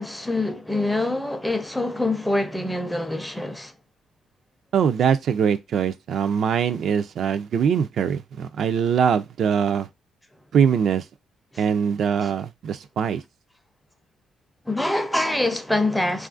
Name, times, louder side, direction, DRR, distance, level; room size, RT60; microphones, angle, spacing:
voice 1, 0.0-3.7 11.5-11.6 12.2-12.3 14.7-16.3, left 2 dB, 5° left, 0.5 m, -25 dB
voice 2, 4.7-9.9 10.5-11.1 11.6-13.2, right 7 dB, 65° right, 0.3 m, -22 dB
3.0 x 2.4 x 2.4 m
cardioid pair, 90°, 0 cm